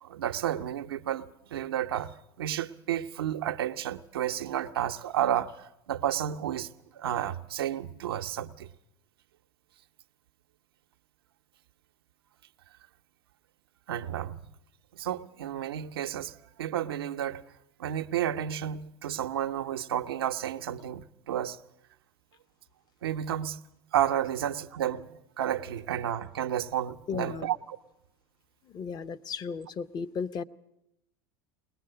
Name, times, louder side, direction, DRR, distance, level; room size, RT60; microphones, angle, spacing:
voice 1, 0.0-8.7 13.9-14.5 14.9-17.4 17.8-21.6 23.0-23.6 23.9-27.6, right 11 dB, 85° right, 0.7 m, -31 dB
voice 2, 27.1-27.5 28.6-30.4, left 6 dB, 35° left, 0.7 m, -35 dB
21.0 x 19.5 x 6.7 m
hypercardioid pair, 100°, 12 cm